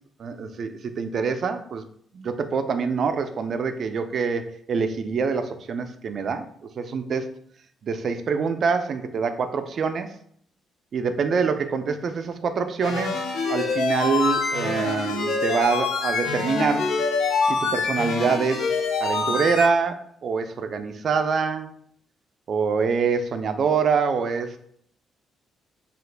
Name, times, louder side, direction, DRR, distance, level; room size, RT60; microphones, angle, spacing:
voice 1, 0.2-1.8 2.1-6.4 6.8-7.3 7.8-10.1 10.9-13.2 13.5-16.9 17.4-18.7 19.0-21.7 22.5-24.6, right 5 dB, 45° right, 8 dB, 0.3 m, -25 dB
sound 1, 12.8-19.7, left 4 dB, 75° left, 0.4 m, -25 dB
2.8 x 2.3 x 3.2 m, 0.63 s
cardioid pair, 140°, 0 cm